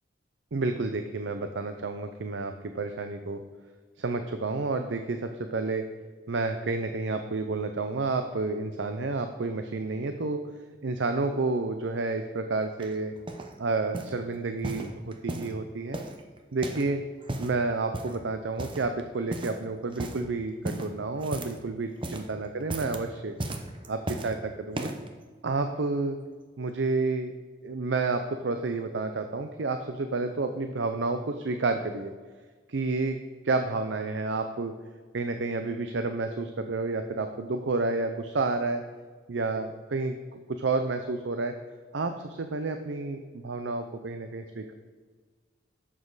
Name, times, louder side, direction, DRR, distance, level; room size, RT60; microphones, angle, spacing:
voice 1, 0.5-3.4 4.0-5.8 6.3-10.4 10.8-13.1 13.6-16.0 16.5-17.0 17.4-23.4 23.9-24.9 25.4-26.2 26.6-27.3 27.6-32.1 32.7-33.2 33.4-34.7 35.1-38.8 39.3-40.2 40.5-41.5 41.9-44.7, right 3 dB, 80° right, 7 dB, 0.6 m, -30 dB
sound 1, 12.8-13.5 13.9-14.2 14.6-15.6 15.9-16.9 17.2-17.6 17.9-18.2 18.6-19.0 19.3-19.6 19.9-20.2 20.6-21.7 21.9-22.3 22.6-23.0 23.4-24.3 24.7-25.1 25.8-25.9, right 1 dB, 25° right, 0.8 m, -35 dB
11.0 x 7.5 x 4.0 m, 1.5 s
head